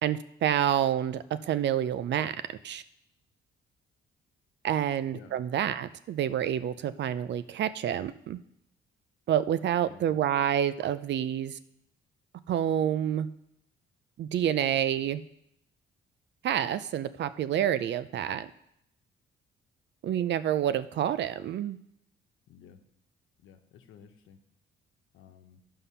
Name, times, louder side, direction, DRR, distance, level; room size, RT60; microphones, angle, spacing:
voice 1, 0.0-2.3 2.6-2.8 4.6-8.4 9.3-11.6 12.5-13.3 14.2-15.2 16.4-18.5 20.0-21.8, right 10 dB, 65° right, 14 dB, 0.6 m, -28 dB
voice 2, 9.8-10.2 22.5-22.8 23.4-24.4 25.1-25.6, left 8 dB, 85° left, 6 dB, 1.0 m, -53 dB
11.0 x 5.6 x 5.6 m, 0.77 s
cardioid pair, 90°, 20 cm